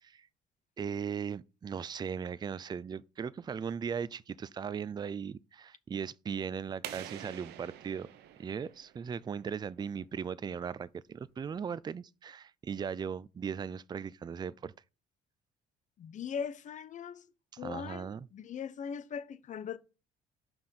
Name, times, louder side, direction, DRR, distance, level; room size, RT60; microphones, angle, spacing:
voice 1, 0.8-8.1 8.4-14.7 17.5-18.3, right 7 dB, 25° right, 0.4 m, -38 dB
sound 1, 6.8-9.5, right 11 dB, 80° right, 1.0 m, -46 dB
voice 2, 16.0-17.2 17.6-19.8, left 7 dB, 45° left, 0.9 m, -40 dB
6.1 x 5.6 x 6.7 m
cardioid pair, 110°, 17 cm